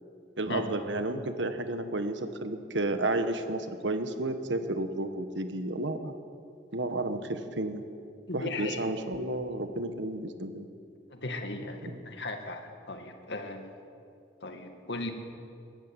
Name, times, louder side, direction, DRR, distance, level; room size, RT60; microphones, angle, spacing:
voice 1, 0.4-6.1 6.7-7.8 8.3-10.7 11.9-12.0, right 2 dB, 80° right, 8 dB, 1.5 m, -32 dB
voice 2, 8.3-8.9 11.1-13.7 14.4-15.1, left 2 dB, 70° left, 5 dB, 2.2 m, -37 dB
22.5 x 13.5 x 9.2 m, 2.4 s
head